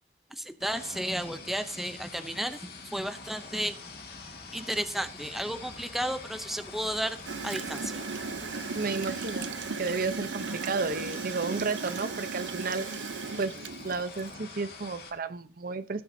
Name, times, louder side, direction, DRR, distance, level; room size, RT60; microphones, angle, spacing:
voice 1, 0.4-2.6 2.9-3.8 4.5-7.2 7.4-8.0, equal, ahead, 9 dB, 0.6 m, -33 dB
sound 1, 0.6-15.1, left 4 dB, 60° left, 2.0 m, -45 dB
Bicycle, 2.7-10.2, left 1 dB, 25° left, 1.3 m, -53 dB
Gurgling / Toilet flush, 7.2-14.3, right 5 dB, 90° right, 0.7 m, -36 dB
voice 2, 8.7-9.5 9.8-12.9 13.4-13.5 13.8-16.0, right 4 dB, 55° right, 12 dB, 0.8 m, -32 dB
16.5 x 8.7 x 2.7 m, 0.37 s
head